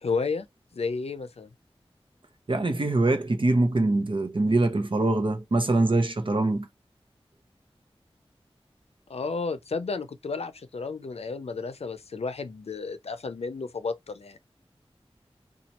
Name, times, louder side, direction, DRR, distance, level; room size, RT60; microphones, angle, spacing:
voice 1, 0.0-0.5 0.7-1.5 9.1-14.4, left 4 dB, 90° left, 0.5 m, -32 dB
voice 2, 2.5-6.7, right 2 dB, 55° right, 0.8 m, -23 dB
2.9 x 2.4 x 4.0 m
wide cardioid pair, 65°, 10 cm